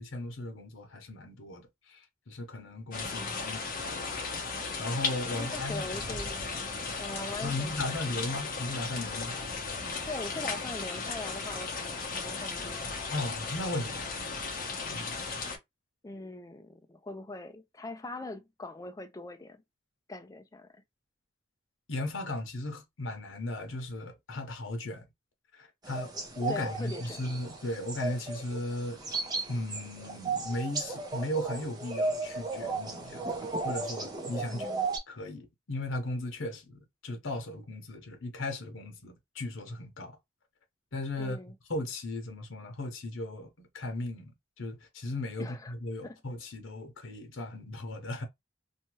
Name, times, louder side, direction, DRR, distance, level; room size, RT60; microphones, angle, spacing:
voice 1, 0.0-4.1 4.8-5.9 7.4-9.4 13.1-14.2 14.9-15.2 21.9-25.0 25.5-29.0 29.5-34.7 35.1-40.2 40.9-41.4 41.7-44.3 44.6-48.3, left 1 dB, 80° left, 0.9 m, -36 dB
sound 1, 2.9-15.6, left 4 dB, 45° left, 0.8 m, -36 dB
voice 2, 3.2-3.5 5.3-8.1 10.0-13.0 16.0-19.6 20.1-20.8 26.5-27.3 34.5-34.9 41.2-41.6 45.4-45.7 46.0-46.2, left 2 dB, 15° left, 0.3 m, -42 dB
sound 2, 25.8-35.0, right 3 dB, 20° right, 0.6 m, -35 dB
2.7 x 2.3 x 3.0 m
head